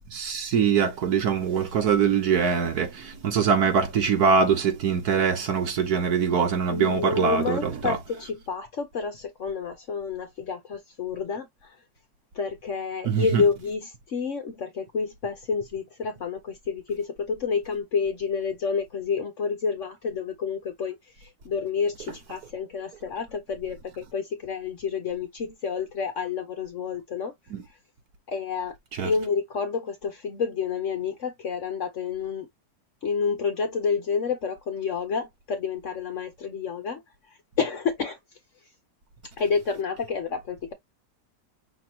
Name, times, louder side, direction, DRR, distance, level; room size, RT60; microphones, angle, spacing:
voice 1, 0.1-8.0 13.0-13.4 27.5-27.6 29.0-29.1, right 6 dB, 60° right, 1.6 m, -23 dB
voice 2, 6.7-11.7 12.3-27.3 28.3-28.7 29.0-32.5 33.0-37.0 37.6-38.2 39.4-40.7, left 5 dB, 55° left, 0.9 m, -29 dB
6.0 x 3.0 x 2.9 m
omnidirectional pair, 1.9 m